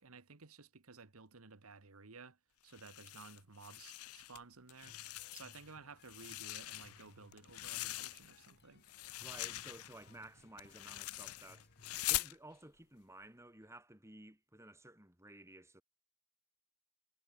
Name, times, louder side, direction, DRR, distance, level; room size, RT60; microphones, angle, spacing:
voice 1, 0.0-2.4 2.6-5.0 5.3-8.8, right 4 dB, 70° right, 1.4 m, -55 dB
sound 1, 2.7-4.4 4.7-5.7 6.0-8.5 8.8-12.3, left 17 dB, 75° left, 0.6 m, -43 dB
sound 2, 4.8-12.3, left 1 dB, 50° left, 5.1 m, -65 dB
voice 2, 9.2-11.7 12.1-15.8, right 1 dB, 10° right, 4.2 m, -55 dB
head